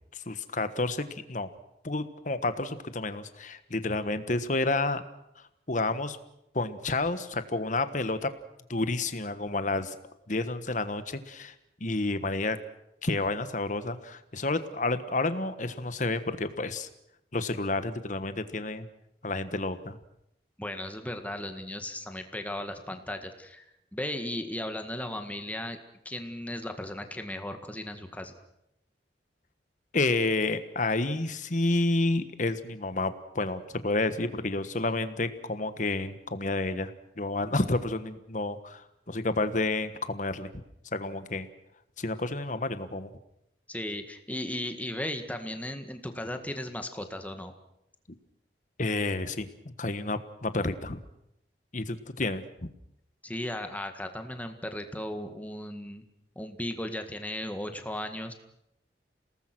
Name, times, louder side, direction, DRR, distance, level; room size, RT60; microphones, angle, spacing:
voice 1, 0.1-1.5 1.8-5.0 5.7-6.2 6.5-8.3 8.7-9.9 10.3-11.5 11.8-12.6 13.0-16.9 17.3-18.9 19.2-20.0 29.9-36.9 37.2-40.5 40.9-41.5 42.0-43.1 48.8-49.5 49.8-51.0 51.7-52.4, left 2 dB, 45° left, 11 dB, 1.4 m, -30 dB
voice 2, 20.6-23.6 23.9-25.8 26.1-28.3 43.7-47.5 53.2-56.0 56.4-58.3, left 1 dB, 10° left, 6 dB, 1.8 m, -36 dB
29.0 x 19.0 x 6.1 m, 0.80 s
head